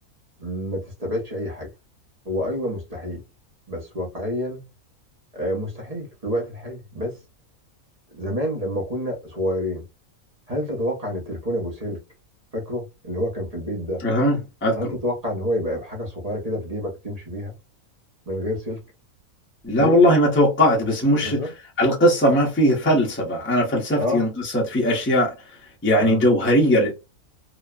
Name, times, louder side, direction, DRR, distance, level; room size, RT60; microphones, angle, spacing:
voice 1, 0.4-1.7 2.2-3.2 3.7-4.7 5.3-7.2 8.1-9.8 10.5-12.0 12.5-14.0 14.7-17.5 18.3-18.8 19.8-20.0 21.2-21.5 24.0-24.2 26.0-26.2, equal, 30° right, 0.9 m, -28 dB
voice 2, 14.0-14.8 19.6-21.4 21.8-25.3 25.8-26.9, equal, 10° left, 0.6 m, -19 dB
3.1 x 2.1 x 2.2 m
omnidirectional pair, 1.6 m